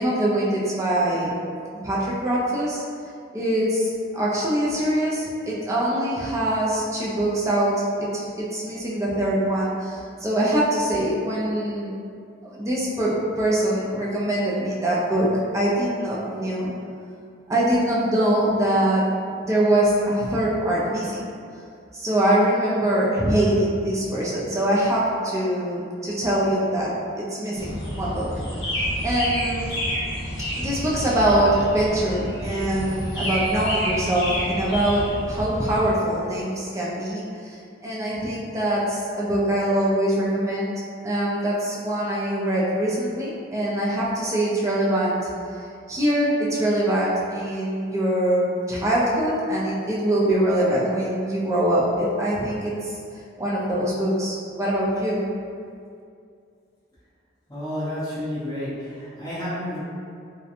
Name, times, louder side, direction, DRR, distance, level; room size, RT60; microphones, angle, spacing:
voice 1, 0.0-1.3 1.8-2.8 3.3-11.9 12.4-15.3 15.5-16.7 17.5-19.0 19.4-21.3 21.9-28.3 28.7-29.7 30.6-40.7 41.0-45.3 45.9-52.9 53.4-55.2, right 1 dB, 15° right, -6 dB, 0.4 m, -23 dB
sound 1, 27.5-35.9, equal, 70° left, 1.1 m, -29 dB
voice 2, 57.5-59.8, left 1 dB, 20° left, -12 dB, 0.6 m, -30 dB
2.7 x 2.1 x 2.4 m, 2.4 s
head